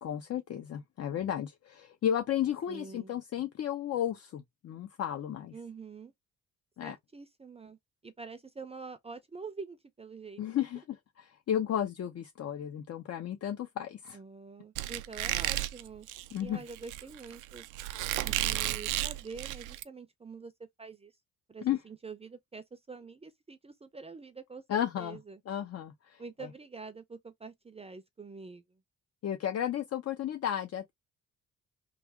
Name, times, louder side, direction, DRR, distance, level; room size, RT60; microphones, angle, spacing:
voice 1, 0.0-5.5 6.8-7.0 10.4-14.2 16.3-16.6 21.6-21.8 24.7-25.2 25.5-26.2 29.2-30.9, left 10 dB, 55° left, 0.7 m, -33 dB
voice 2, 2.7-3.1 5.5-6.1 6.8-10.4 14.1-16.1 16.4-17.7 18.2-20.5 20.8-21.1 21.5-25.4 26.2-28.8, right 4 dB, 20° right, 0.5 m, -46 dB
Squeak, 14.7-19.8, right 15 dB, 85° right, 0.5 m, -33 dB
3.3 x 2.4 x 3.4 m
cardioid pair, 90°, 30 cm